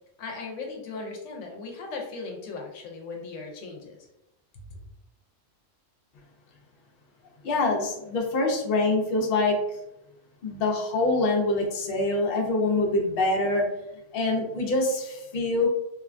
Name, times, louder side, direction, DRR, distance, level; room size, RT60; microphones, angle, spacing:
voice 1, 0.2-4.1 4.5-4.8, left 3 dB, 80° left, 1 dB, 0.9 m, -38 dB
voice 2, 7.4-9.6 10.4-13.6 14.1-15.7, left 2 dB, 55° left, 0 dB, 0.7 m, -25 dB
3.0 x 2.2 x 2.4 m, 0.87 s
omnidirectional pair, 1.3 m